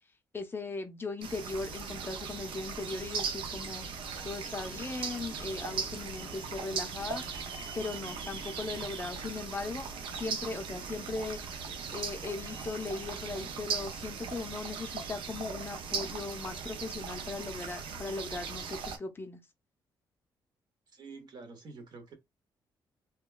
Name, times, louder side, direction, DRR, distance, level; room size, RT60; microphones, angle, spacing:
voice 1, 0.3-3.9 4.2-11.4 11.9-19.4, left 3 dB, 25° left, 0.5 m, -38 dB
sound 1, 1.2-19.0, right 6 dB, 80° right, 0.5 m, -39 dB
Harp, 4.1-12.6, left 6 dB, 75° left, 0.6 m, -56 dB
voice 2, 20.9-22.1, right 4 dB, 55° right, 0.8 m, -48 dB
2.9 x 2.2 x 2.3 m
cardioid pair, 115°, 9 cm